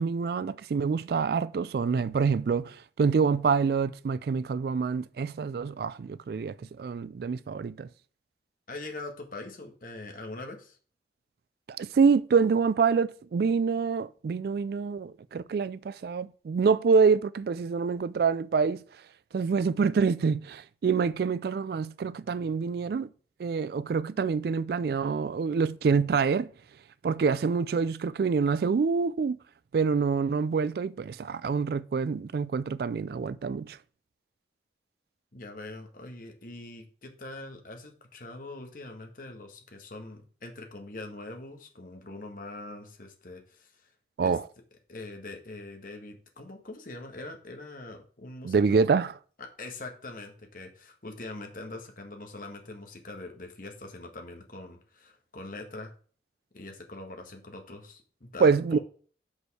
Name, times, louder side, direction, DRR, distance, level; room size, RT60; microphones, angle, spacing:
voice 1, 0.0-7.9 11.8-18.8 19.3-23.1 23.4-26.5 27.0-29.4 29.7-33.8 44.2-44.4 48.4-49.1 58.4-58.8, right 5 dB, 55° right, 0.3 m, -26 dB
voice 2, 8.7-10.8 35.3-43.9 44.2-44.4 44.9-48.9 49.4-55.9 56.5-58.8, left 2 dB, 50° left, 1.4 m, -43 dB
6.3 x 5.3 x 4.8 m
head